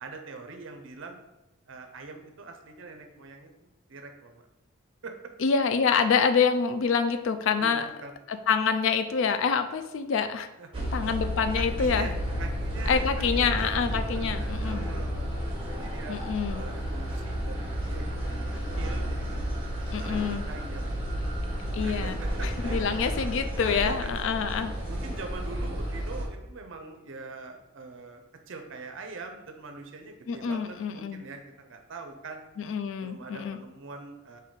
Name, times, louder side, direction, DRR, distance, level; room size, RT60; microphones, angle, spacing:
voice 1, 0.0-1.3 1.7-3.5 3.9-4.4 5.0-5.1 7.6-8.1 10.6-10.8 11.6-13.8 14.1-16.2 16.5-18.5 18.8-20.9 21.8-22.9 23.6-24.1 24.9-32.4 33.0-34.4, right 3 dB, 60° right, 5 dB, 0.5 m, -43 dB
voice 2, 5.4-7.9 8.3-10.5 10.9-12.1 12.9-14.8 16.1-16.6 19.9-20.4 21.7-22.2 22.4-24.7 30.3-31.2 32.6-33.6, left 6 dB, 65° left, 10 dB, 0.3 m, -26 dB
sound 1, 10.7-26.3, equal, 25° right, 0.7 m, -32 dB
3.6 x 2.6 x 3.9 m, 0.94 s
head